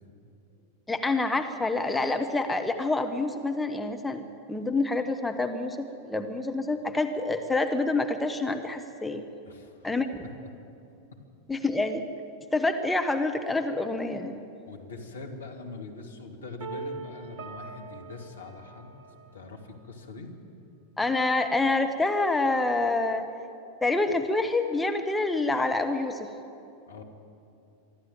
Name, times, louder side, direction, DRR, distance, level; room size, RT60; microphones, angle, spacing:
voice 1, 0.9-9.2 9.8-10.2 11.5-12.0 12.5-14.4 21.0-23.3 23.8-26.3, left 2 dB, 5° left, 6 dB, 1.1 m, -27 dB
voice 2, 9.4-10.3 14.6-18.9 19.3-20.4 26.9-27.0, left 3 dB, 70° left, 2 dB, 2.5 m, -43 dB
sound 1, 16.6-19.5, right 4 dB, 50° right, 2.2 m, -41 dB
23.5 x 13.5 x 9.2 m, 2.7 s
figure-of-eight pair, 90°, 0 cm